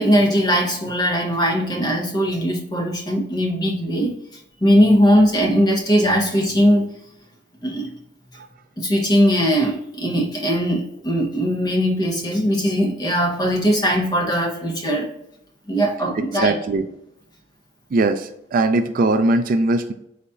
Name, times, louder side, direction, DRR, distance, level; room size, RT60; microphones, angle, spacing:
voice 1, 0.0-4.2 4.6-6.9 7.6-7.9 8.8-15.1 15.7-16.6, equal, 20° left, -1 dB, 0.9 m, -19 dB
voice 2, 16.2-16.9 17.9-19.9, right 2 dB, 45° right, 9 dB, 0.3 m, -20 dB
4.2 x 4.0 x 2.3 m, 0.78 s
head